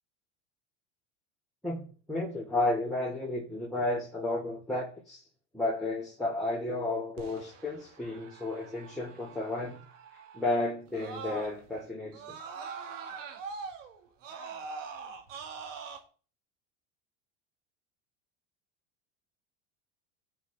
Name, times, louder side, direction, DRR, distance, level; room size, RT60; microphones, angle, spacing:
voice 1, 1.6-5.2 5.5-9.8 10.3-12.4, left 2 dB, ahead, 2.2 m, -32 dB
Screaming, 7.2-11.8 12.1-16.0, right 5 dB, 80° right, 1.9 m, -43 dB
16.5 x 5.6 x 3.4 m
hypercardioid pair, 95°, 38 cm